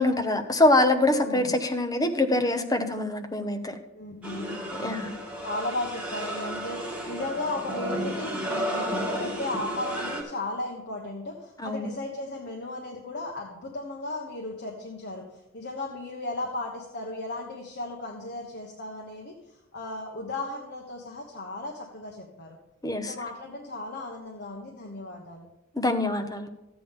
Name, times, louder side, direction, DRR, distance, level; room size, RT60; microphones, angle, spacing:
voice 1, 0.0-3.7 4.8-5.1 11.6-11.9 22.8-23.1 25.8-26.5, left 2 dB, 20° left, 6 dB, 0.8 m, -24 dB
voice 2, 1.2-1.6 3.9-5.0 5.4-6.8 7.1-15.3 15.5-19.3 19.7-22.6 23.1-25.5, left 2 dB, 55° left, 0 dB, 1.2 m, -35 dB
sound 1, 4.2-10.2, equal, 5° right, 1.8 m, -32 dB
13.5 x 8.5 x 3.7 m, 0.91 s
head